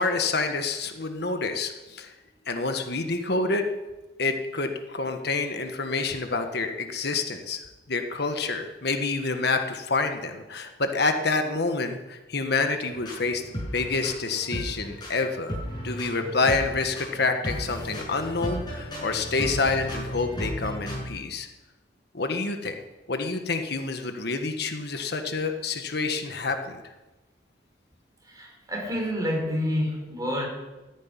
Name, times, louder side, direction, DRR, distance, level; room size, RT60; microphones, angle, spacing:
voice 1, 0.0-2.1 2.5-3.7 4.2-13.4 13.7-15.6 15.8-21.5 22.1-22.8 23.1-26.8, left 3 dB, 65° left, 6 dB, 1.5 m, -28 dB
sound 1, 12.9-21.1, equal, 25° left, 6.5 m, -35 dB
voice 2, 28.3-30.5, equal, 20° right, 1 dB, 4.5 m, -28 dB
14.0 x 10.5 x 9.8 m, 1.1 s
head